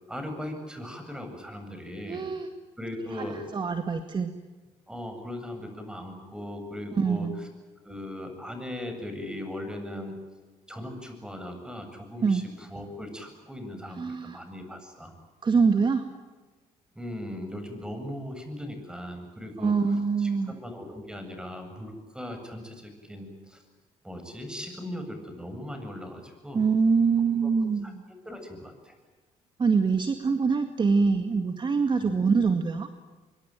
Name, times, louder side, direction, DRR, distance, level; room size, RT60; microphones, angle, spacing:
voice 1, 0.1-2.2 2.8-3.4 4.9-7.5 7.8-10.2 10.7-15.1 16.9-19.7 20.2-23.6 24.0-26.6 27.4-27.5 27.8-28.9 32.0-32.2, left 1 dB, 5° right, 6 dB, 7.8 m, -38 dB
voice 2, 2.1-2.5 3.1-4.3 6.9-7.4 12.2-12.4 14.0-14.4 15.4-16.0 19.6-20.5 26.5-28.0 29.6-32.9, right 5 dB, 35° right, 7 dB, 2.0 m, -24 dB
24.5 x 23.5 x 9.2 m, 1.3 s
cardioid pair, 95°, 13 cm